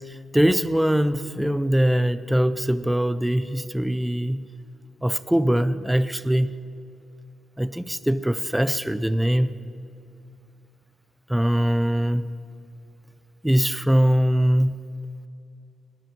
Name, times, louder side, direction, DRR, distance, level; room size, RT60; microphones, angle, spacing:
voice 1, 0.1-4.4 5.0-6.5 7.6-9.5 11.3-12.3 13.4-14.8, equal, 5° right, 14 dB, 0.4 m, -22 dB
18.0 x 10.5 x 6.0 m, 2.5 s
cardioid pair, 135°, 0 cm